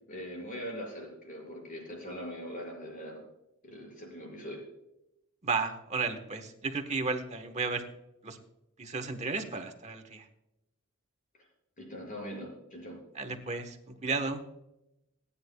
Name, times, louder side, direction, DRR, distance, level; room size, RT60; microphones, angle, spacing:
voice 1, 0.1-3.2 3.6-4.6 11.8-13.0, equal, 40° left, -1 dB, 5.5 m, -41 dB
voice 2, 5.4-7.8 8.2-8.4 8.8-10.2 13.1-14.4, right 4 dB, 30° right, 6 dB, 1.2 m, -33 dB
27.5 x 9.9 x 2.3 m, 0.88 s
head